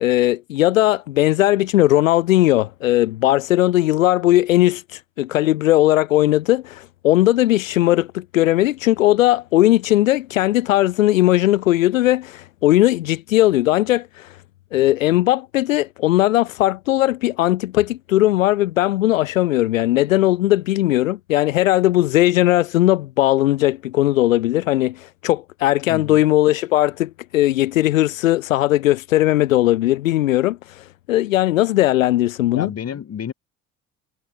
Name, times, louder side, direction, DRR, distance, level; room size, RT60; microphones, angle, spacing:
voice 1, 0.0-14.4 14.7-32.7, left 15 dB, 85° left, 0.8 m, -18 dB
voice 2, 25.9-26.2 32.5-33.3, left 8 dB, 40° left, 2.8 m, -30 dB
hypercardioid pair, 60°, 39 cm